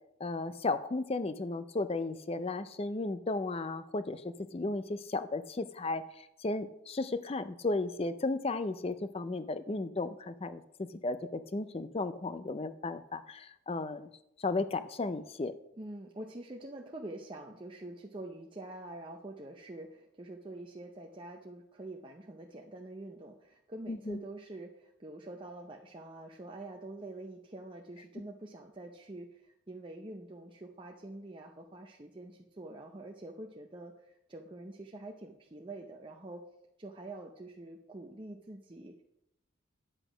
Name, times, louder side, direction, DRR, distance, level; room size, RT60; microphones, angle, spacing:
voice 1, 0.2-4.2 4.5-6.0 6.4-14.1 14.4-15.6 23.9-24.2, left 3 dB, 25° left, 12 dB, 0.4 m, -34 dB
voice 2, 15.8-36.4 36.8-39.0, right 2 dB, 25° right, 1 dB, 0.6 m, -46 dB
9.9 x 8.1 x 5.0 m, 0.83 s
head